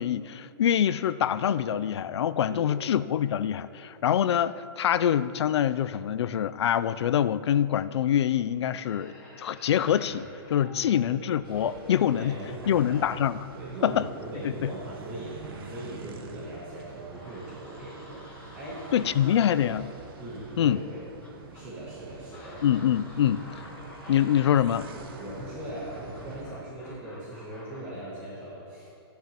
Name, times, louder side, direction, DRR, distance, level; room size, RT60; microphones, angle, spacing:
voice 1, 0.0-12.4 12.7-13.5 13.8-14.1 14.4-14.7 18.9-19.9 20.6-20.8 22.6-23.6 24.1-24.9, left 10 dB, 90° left, 15 dB, 0.4 m, -25 dB
voice 2, 2.5-2.9 10.6-11.0 12.1-13.1 13.5-18.2 18.5-19.8 20.2-21.0 21.5-22.6 25.2-28.9, right 1 dB, 20° right, -8 dB, 1.6 m, -40 dB
sound 1, 8.7-27.9, left 1 dB, 10° left, 1.3 m, -50 dB
sound 2, 11.4-26.4, right 4 dB, 60° right, 1.1 m, -45 dB
15.0 x 10.0 x 2.9 m, 2.6 s
hypercardioid pair, 180°, 14 cm